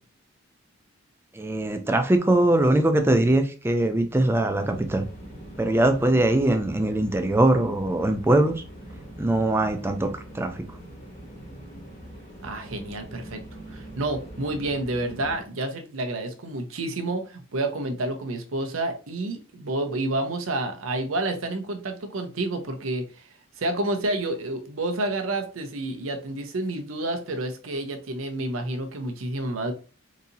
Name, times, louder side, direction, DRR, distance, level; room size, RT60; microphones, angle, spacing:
voice 1, 1.3-5.1 5.6-8.6 9.2-10.6, right 1 dB, 10° right, 0.4 m, -22 dB
walk beach, 4.6-15.5, right 1 dB, 35° left, 1.4 m, -42 dB
voice 2, 12.4-13.4 13.7-23.0 23.6-29.7, right 2 dB, 85° right, 0.7 m, -29 dB
3.9 x 2.8 x 2.6 m
head